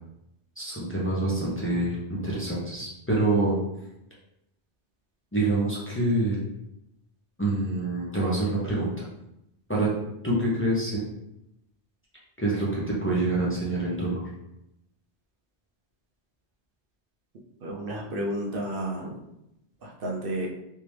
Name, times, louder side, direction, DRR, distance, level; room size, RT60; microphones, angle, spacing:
voice 1, 0.6-3.6 5.3-6.4 7.4-9.0 9.7-9.9 10.2-11.0 12.4-14.2, right 2 dB, 15° left, -6 dB, 0.8 m, -26 dB
voice 2, 17.6-19.1 19.8-20.5, right 1 dB, 60° right, -2 dB, 0.9 m, -31 dB
3.5 x 2.9 x 3.2 m, 0.84 s
omnidirectional pair, 1.1 m